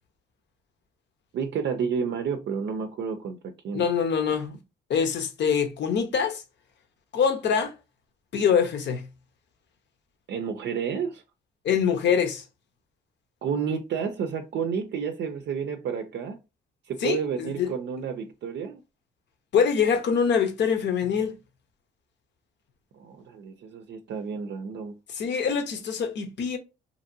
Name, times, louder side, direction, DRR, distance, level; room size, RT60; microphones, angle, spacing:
voice 1, 1.3-3.4 3.6-3.8 10.3-11.2 13.4-16.4 16.9-18.8 22.9-24.9, right 6 dB, 60° right, 0.4 m, -30 dB
voice 2, 3.7-4.6 4.9-6.4 7.1-7.7 8.3-9.0 11.6-12.4 17.0-17.7 19.5-21.4 25.1-26.6, left 7 dB, 65° left, 0.8 m, -24 dB
2.9 x 2.6 x 2.6 m
cardioid pair, 90°, 20 cm